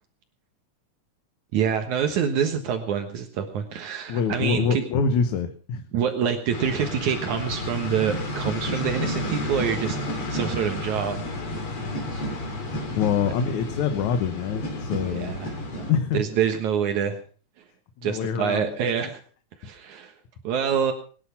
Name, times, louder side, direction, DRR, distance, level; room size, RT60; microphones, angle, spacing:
voice 1, 1.5-4.8 5.9-11.2 12.1-12.3 15.1-17.2 18.0-19.2 19.6-20.1 20.4-20.9, right 7 dB, 75° right, 6 dB, 2.8 m, -26 dB
voice 2, 4.1-5.8 12.8-15.3 15.9-16.3 18.0-18.7, left 6 dB, 75° left, 8 dB, 2.6 m, -25 dB
sound 1, 6.5-15.9, left 1 dB, 45° left, 3.8 m, -31 dB
22.5 x 11.0 x 5.8 m, 0.41 s
omnidirectional pair, 3.4 m